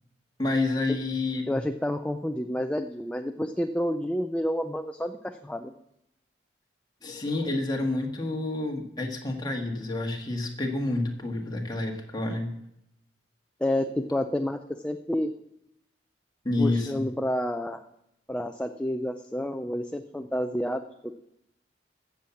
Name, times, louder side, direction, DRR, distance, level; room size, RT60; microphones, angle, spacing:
voice 1, 0.4-1.6 7.0-12.5 16.4-17.0, left 2 dB, 20° left, 1 dB, 1.6 m, -29 dB
voice 2, 1.5-5.7 13.6-15.3 16.6-17.8 18.3-20.8, left 1 dB, 5° left, 6 dB, 0.4 m, -29 dB
15.0 x 7.2 x 7.1 m, 0.82 s
head